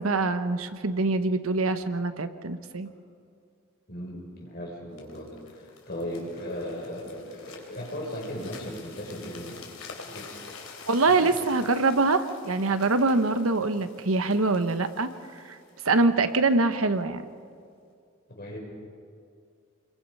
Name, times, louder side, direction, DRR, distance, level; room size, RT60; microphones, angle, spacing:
voice 1, 0.0-2.9 10.9-15.1 15.5-15.6 15.8-17.2, right 3 dB, 90° right, 10 dB, 1.1 m, -24 dB
voice 2, 3.9-9.6 10.1-10.4 11.1-11.3 18.3-18.6, equal, 50° left, -2 dB, 6.3 m, -37 dB
sound 1, 5.0-16.8 17.4-17.6, left 5 dB, 90° left, 3.5 m, -48 dB
27.0 x 22.0 x 5.6 m, 2.3 s
head